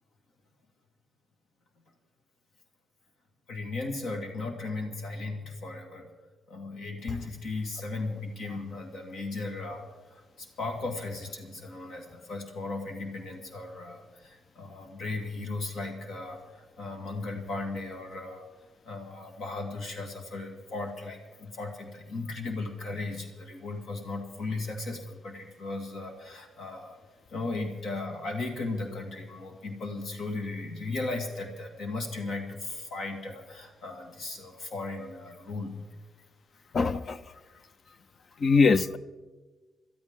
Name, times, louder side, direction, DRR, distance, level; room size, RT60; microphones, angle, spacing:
voice 1, 3.5-6.1 6.5-18.4 18.8-27.0 27.3-35.8 36.9-37.0, left 3 dB, 60° left, 3 dB, 2.1 m, -36 dB
voice 2, 36.7-37.2 38.4-39.0, left 4 dB, 35° left, 16 dB, 0.5 m, -22 dB
23.0 x 13.0 x 3.7 m, 1.3 s
cardioid pair, 165°, 0 cm